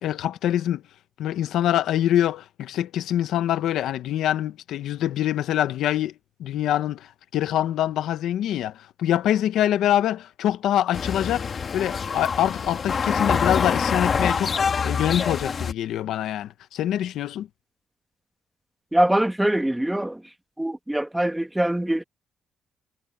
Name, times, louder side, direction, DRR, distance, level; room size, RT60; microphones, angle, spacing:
voice 1, 0.0-0.8 1.2-6.1 6.4-7.0 7.3-14.6 14.8-17.5, left 11 dB, 80° left, 1.1 m, -24 dB
sound 1, 10.9-15.7, left 6 dB, 45° left, 1.9 m, -25 dB
voice 2, 18.9-20.2 20.6-22.0, right 1 dB, 5° right, 2.2 m, -23 dB
cardioid pair, 90°, 0 cm